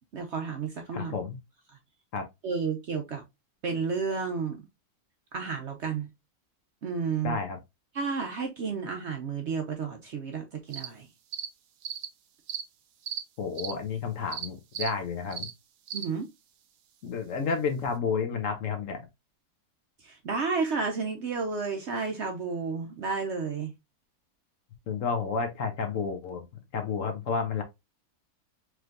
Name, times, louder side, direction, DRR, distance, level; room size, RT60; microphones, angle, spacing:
voice 1, 0.1-1.2 2.4-3.2 3.6-4.6 5.3-6.1 6.8-7.4 7.9-11.1 15.9-16.3 20.0-23.7, right 5 dB, 60° right, 0.8 m, -31 dB
voice 2, 0.9-1.4 2.1-2.2 7.2-7.6 13.4-15.5 17.0-19.0 24.9-26.4 26.7-27.6, left 5 dB, 60° left, 1.2 m, -31 dB
sound 1, 10.7-10.9 11.3-11.5 11.8-12.1 12.5-12.6 13.1-13.2 13.6-13.7 14.3-14.5 14.7-14.9 15.3-15.5 15.9-16.1, right 8 dB, 75° right, 1.2 m, -35 dB
4.6 x 3.2 x 2.5 m
omnidirectional pair, 1.7 m